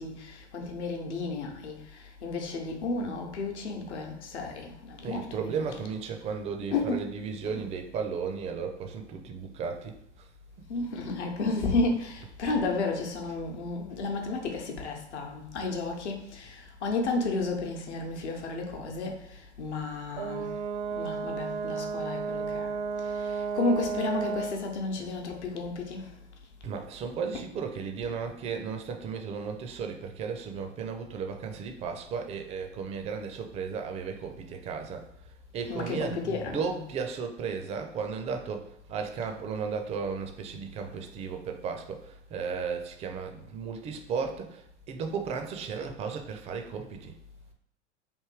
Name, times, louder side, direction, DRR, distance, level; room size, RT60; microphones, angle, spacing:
voice 1, 0.0-1.8 2.2-5.7 6.7-7.0 7.5-7.6 10.7-19.2 19.6-20.5 21.0-22.7 23.2-26.1 35.6-36.8, left 3 dB, 70° left, 2 dB, 0.9 m, -32 dB
voice 2, 5.0-9.9 25.0-25.1 26.6-35.1 35.5-47.2, right 6 dB, 20° right, 5 dB, 0.4 m, -35 dB
Brass instrument, 20.1-24.6, right 5 dB, 70° right, 0.6 m, -33 dB
3.5 x 2.6 x 4.6 m, 0.76 s
figure-of-eight pair, 85°, 36 cm